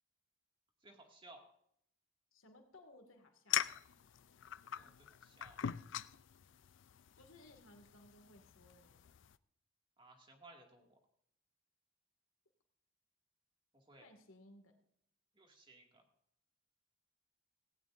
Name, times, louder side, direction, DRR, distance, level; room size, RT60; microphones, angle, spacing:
voice 1, 0.8-1.4 4.8-5.6 10.0-11.0 13.7-14.1 15.4-16.1, right 2 dB, 25° right, 1 dB, 2.2 m, -60 dB
voice 2, 2.3-3.6 7.2-9.1 14.0-14.8, left 1 dB, 80° left, 5 dB, 2.2 m, -61 dB
sound 1, 3.5-9.4, left 10 dB, 65° left, 0.4 m, -43 dB
17.0 x 17.0 x 2.6 m, 0.71 s
head